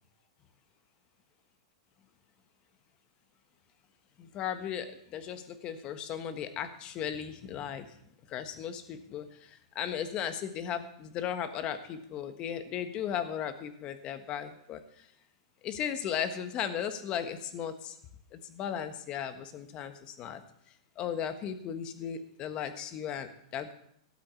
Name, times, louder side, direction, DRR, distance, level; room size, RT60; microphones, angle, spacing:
voice 1, 4.2-7.8 8.3-9.3 9.7-14.8 15.6-17.9 18.3-20.4 21.0-23.7, left 9 dB, 35° left, 10 dB, 1.3 m, -36 dB
13.0 x 7.7 x 7.0 m, 0.72 s
hypercardioid pair, 140°, 3 cm